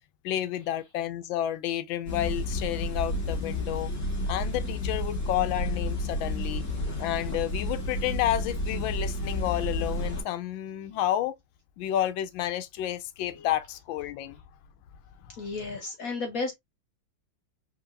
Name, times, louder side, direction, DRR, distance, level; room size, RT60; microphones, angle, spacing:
voice 1, 0.2-3.9 4.3-6.6 7.0-11.3 11.8-14.4 15.3-15.5, left 12 dB, 85° left, 1.3 m, -30 dB
sound 1, 2.1-10.2, left 2 dB, 40° left, 2.0 m, -31 dB
voice 2, 15.4-16.6, left 3 dB, 60° left, 0.9 m, -32 dB
4.5 x 2.8 x 2.4 m
omnidirectional pair, 2.1 m